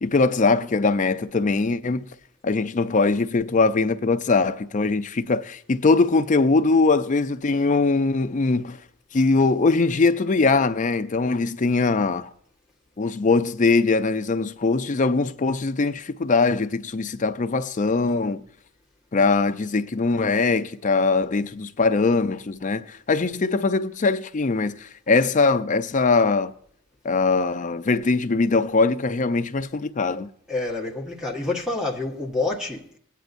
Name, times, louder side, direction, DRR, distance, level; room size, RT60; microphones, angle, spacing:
voice 1, 0.0-2.1 2.4-8.8 9.1-12.3 13.0-18.4 19.1-26.5 27.0-30.3, left 3 dB, 35° left, 0.5 m, -21 dB
voice 2, 30.5-33.0, left 2 dB, 5° right, 1.3 m, -28 dB
17.5 x 9.2 x 2.6 m
head